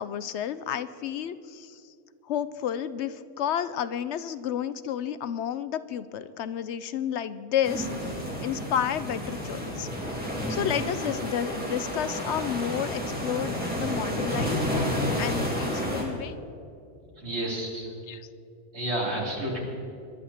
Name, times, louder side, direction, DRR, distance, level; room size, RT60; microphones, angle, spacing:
voice 1, 0.0-1.8 2.2-8.1 8.4-9.9 10.5-14.6 15.2-16.4 18.1-18.2, left 9 dB, 70° left, 14 dB, 0.8 m, -31 dB
sound 1, 7.6-16.0, equal, 5° right, 2.7 m, -30 dB
voice 2, 17.1-17.9 18.7-19.6, right 1 dB, 65° right, -4 dB, 3.6 m, -31 dB
21.0 x 11.5 x 4.2 m, 2.6 s
omnidirectional pair, 1.2 m